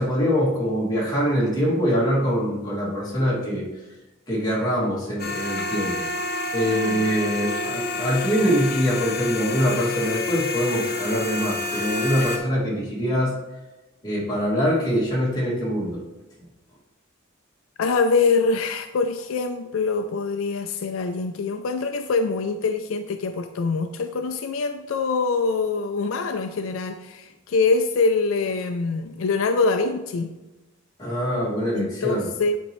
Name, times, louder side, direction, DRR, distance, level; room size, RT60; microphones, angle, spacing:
voice 1, 0.0-3.7 4.3-6.1 6.5-13.4 14.0-16.0 31.0-32.3, equal, 20° left, -6 dB, 2.2 m, -24 dB
sound 1, 5.2-12.4, left 3 dB, 50° left, 0.8 m, -28 dB
voice 2, 6.7-7.2 17.8-30.3 31.7-32.6, left 4 dB, 75° left, 8 dB, 0.4 m, -24 dB
9.8 x 4.3 x 3.1 m, 1.0 s
head